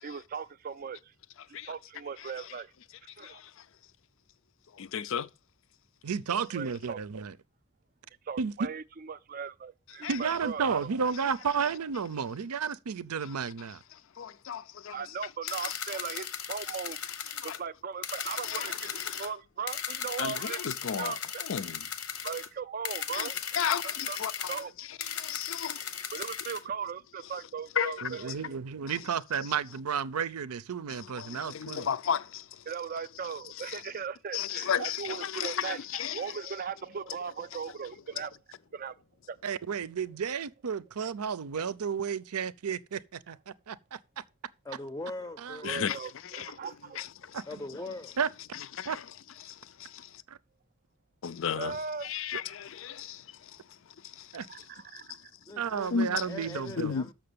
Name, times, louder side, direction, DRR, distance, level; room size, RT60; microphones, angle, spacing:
voice 1, 0.0-1.1 1.5-2.7 3.2-3.4 6.4-7.0 8.3-10.9 14.9-17.0 17.4-20.6 21.0-21.4 22.2-23.4 23.8-24.2 24.5-24.7 26.1-28.4 32.7-35.8 36.1-38.3 38.7-38.9 39.3-39.4 45.6-47.1 51.5-52.1 54.5-55.2, right 6 dB, 40° right, 0.4 m, -38 dB
voice 2, 3.2-3.6 4.7-5.3 10.0-10.2 13.9-15.0 15.4-15.8 17.4-17.6 18.4-19.3 20.2-21.8 23.1-25.9 27.8-28.1 30.9-32.6 33.6-33.8 34.3-36.5 45.6-46.0 46.3-46.5 47.0-47.4 48.5-49.0 49.4-50.2 51.2-51.8 52.0-53.6 54.0-54.4 55.9-56.2 56.8-57.1, left 7 dB, 60° left, 0.4 m, -35 dB
voice 3, 6.0-7.3 8.4-8.7 10.1-13.8 28.0-31.9 39.4-44.0 45.4-45.6 47.3-47.4 48.2-48.3 48.9-49.0 50.3-50.4 52.3-52.4 54.3-54.5 55.6-56.9, right 6 dB, 90° right, 0.6 m, -32 dB
sound 1, 15.5-17.6 18.0-19.3 19.7-22.5 22.8-24.6 25.0-26.6, left 8 dB, 80° left, 1.0 m, -37 dB
voice 4, 44.6-45.9 47.5-48.2 55.5-57.1, left 2 dB, 15° left, 0.5 m, -41 dB
6.9 x 6.0 x 6.6 m
head